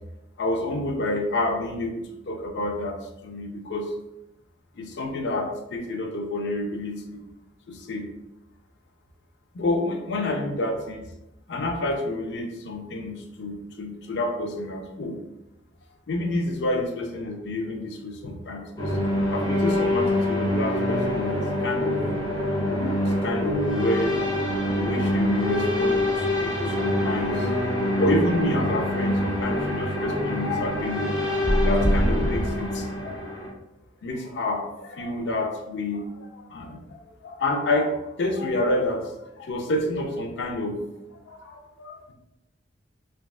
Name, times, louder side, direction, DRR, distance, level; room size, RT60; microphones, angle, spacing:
voice 1, 0.4-2.9 3.2-3.9 4.7-7.2 7.7-8.1 9.5-11.1 11.5-15.2 16.1-19.0 19.3-22.1 22.7-22.9 23.2-24.1 24.7-33.5 34.0-39.1 39.4-40.8 41.3-42.1, left 2 dB, 65° left, 3 dB, 0.5 m, -29 dB
sound 1, 18.8-33.5, left 1 dB, 20° left, 0.8 m, -25 dB
3.3 x 2.3 x 2.3 m, 0.89 s
head